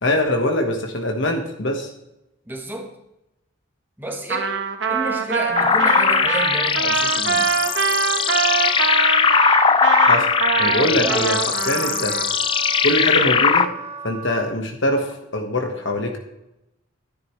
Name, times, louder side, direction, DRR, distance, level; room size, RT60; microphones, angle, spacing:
voice 1, 0.0-1.9 10.1-10.3 10.6-11.4 11.7-12.2 12.8-13.7 14.0-16.2, left 1 dB, 65° left, 3 dB, 1.4 m, -22 dB
voice 2, 2.5-2.9 4.0-4.6 4.9-7.5 10.8-11.2, right 1 dB, 10° right, 2 dB, 1.4 m, -30 dB
Trumpet, 4.3-12.3, right 5 dB, 60° right, 1.1 m, -23 dB
sound 1, 5.6-13.6, left 6 dB, 25° left, 0.3 m, -19 dB
Wind instrument woodwind instrument, 7.0-14.5, right 4 dB, 30° right, 0.6 m, -35 dB
12.0 x 10.5 x 3.2 m, 0.88 s
head